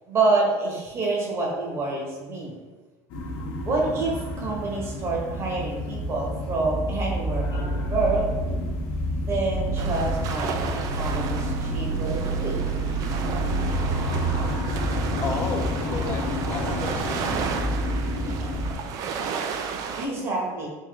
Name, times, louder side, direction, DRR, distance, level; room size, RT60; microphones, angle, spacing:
voice 1, 0.1-2.5 3.6-8.3 9.1-12.6 20.0-20.7, right 3 dB, 35° right, -2 dB, 1.0 m, -27 dB
sound 1, 3.1-18.7, right 1 dB, 65° left, 0.9 m, -28 dB
sound 2, 9.8-20.1, right 6 dB, 50° right, 0.4 m, -33 dB
voice 2, 15.2-17.3, left 4 dB, 25° left, 3 dB, 0.5 m, -33 dB
3.6 x 3.0 x 3.4 m, 1.3 s
supercardioid pair, 130°, 8 cm